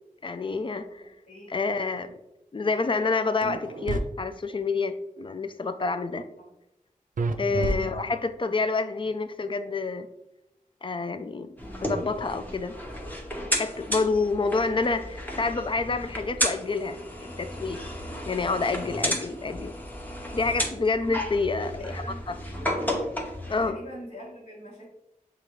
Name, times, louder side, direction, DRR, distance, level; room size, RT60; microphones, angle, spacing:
voice 1, 0.2-1.1 1.5-2.2 2.5-6.3 7.4-10.1 10.8-12.8 13.6-17.8 18.3-19.8 20.3-22.4 23.5-23.8, left 4 dB, 35° left, 10 dB, 0.4 m, -28 dB
voice 2, 1.0-1.5 6.4-6.5 21.5-22.3 23.4-24.9, left 1 dB, 60° left, -6 dB, 1.2 m, -44 dB
sound 1, 3.4-4.0 7.2-8.3, right 3 dB, 70° right, 0.4 m, -29 dB
sound 2, 11.6-23.7, equal, 10° left, 0.8 m, -33 dB
6.7 x 2.4 x 3.0 m, 0.87 s
wide cardioid pair, 70°, 14 cm